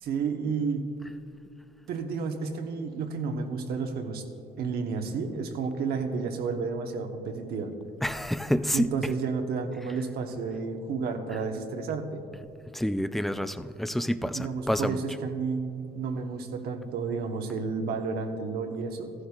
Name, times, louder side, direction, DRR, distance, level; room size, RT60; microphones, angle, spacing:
voice 1, 0.0-0.8 1.9-4.2 4.6-7.7 8.7-12.2 14.3-19.1, right 5 dB, 65° right, 5 dB, 1.1 m, -31 dB
voice 2, 8.0-9.1 9.8-10.0 11.3-11.4 12.7-15.0, equal, ahead, 12 dB, 0.3 m, -28 dB
14.5 x 11.5 x 2.4 m, 2.5 s
cardioid pair, 110°, 17 cm